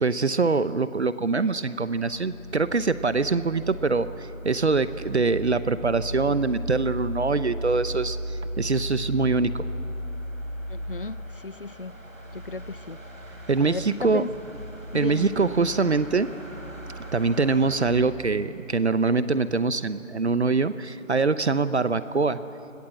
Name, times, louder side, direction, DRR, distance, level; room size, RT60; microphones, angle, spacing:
voice 1, 0.0-9.7 13.5-14.3 14.9-16.3 17.1-22.4, right 4 dB, 55° right, 14 dB, 0.9 m, -24 dB
sound 1, 1.9-17.9, equal, 85° right, 5.6 m, -36 dB
voice 2, 10.7-11.9 12.3-13.0 13.6-14.3 14.9-15.3, left 3 dB, 45° left, 18 dB, 0.5 m, -34 dB
28.0 x 21.5 x 7.6 m, 2.8 s
figure-of-eight pair, 165°, 39 cm